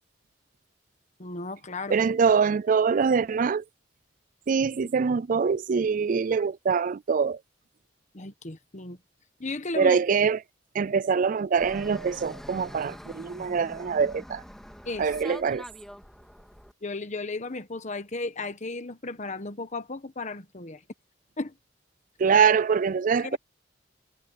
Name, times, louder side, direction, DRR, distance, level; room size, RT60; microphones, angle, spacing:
voice 1, 1.2-2.0 8.1-9.0 9.4-10.0 14.8-15.4 16.8-20.8 21.4-21.5 23.2-23.4, left 3 dB, 40° left, 1.4 m, -35 dB
voice 2, 1.9-3.6 4.5-7.4 9.7-10.4 10.7-14.4 15.0-15.6 22.2-23.4, right 6 dB, 45° right, 0.4 m, -24 dB
Fixed-wing aircraft airplane, 11.6-16.7, equal, ahead, 1.9 m, -44 dB
head